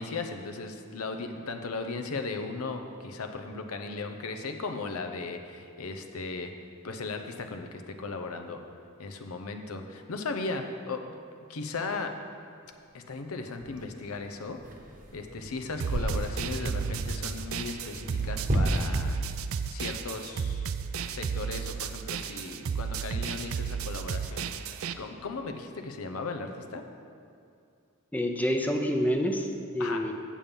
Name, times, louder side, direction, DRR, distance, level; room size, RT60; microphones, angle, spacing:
voice 1, 0.0-6.5 6.8-8.6 9.0-11.1 11.5-12.1 12.9-14.6 15.1-19.2 19.7-20.7 21.1-26.8 29.8-30.0, left 3 dB, 85° left, 6 dB, 0.7 m, -37 dB
sound 1, 12.7-12.8 13.6-13.8 14.5-18.6, right 1 dB, 40° right, 1.0 m, -33 dB
sound 2, 15.8-24.9, right 7 dB, 70° right, 0.4 m, -33 dB
voice 2, 28.1-30.1, equal, 5° left, 3 dB, 0.5 m, -28 dB
8.5 x 7.3 x 5.3 m, 2.4 s
head